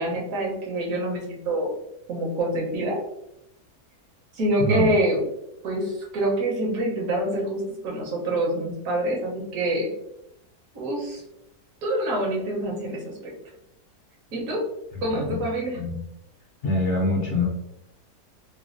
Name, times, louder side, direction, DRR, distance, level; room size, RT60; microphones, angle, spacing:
voice 1, 0.0-1.7 2.1-3.0 4.3-5.2 5.6-9.9 10.7-11.2 11.8-13.3 14.3-14.6 15.0-15.8, right 1 dB, 65° right, -2 dB, 1.2 m, -26 dB
voice 2, 16.6-17.4, left 2 dB, 60° left, -2 dB, 0.8 m, -24 dB
3.2 x 2.2 x 2.4 m, 0.80 s
omnidirectional pair, 1.7 m